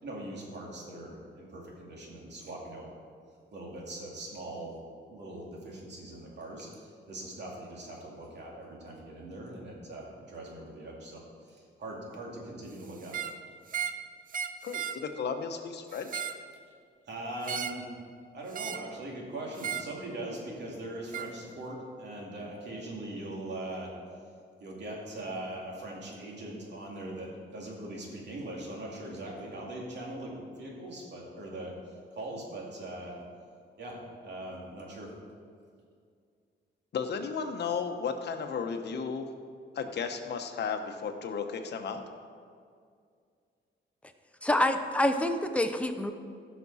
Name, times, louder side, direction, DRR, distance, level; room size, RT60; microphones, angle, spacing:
voice 1, 0.0-2.9 3.5-4.8 5.1-13.1 17.1-17.9 18.3-23.9 24.6-31.7 32.1-33.2 33.8-34.0 34.2-35.1, right 1 dB, 60° right, -2 dB, 2.5 m, -41 dB
sound 1, 13.0-13.4 13.7-14.0 14.3-15.0 15.9-16.4 17.4-17.8 18.5-18.9 19.6-19.9 21.1-21.3, right 8 dB, 45° right, 0.6 m, -35 dB
voice 2, 14.6-16.2 36.9-39.3 39.7-42.0, left 5 dB, 60° left, 5 dB, 1.0 m, -34 dB
voice 3, 44.4-46.1, left 1 dB, 5° left, 6 dB, 0.7 m, -26 dB
16.0 x 6.0 x 4.2 m, 2.2 s
cardioid pair, 120°, 20 cm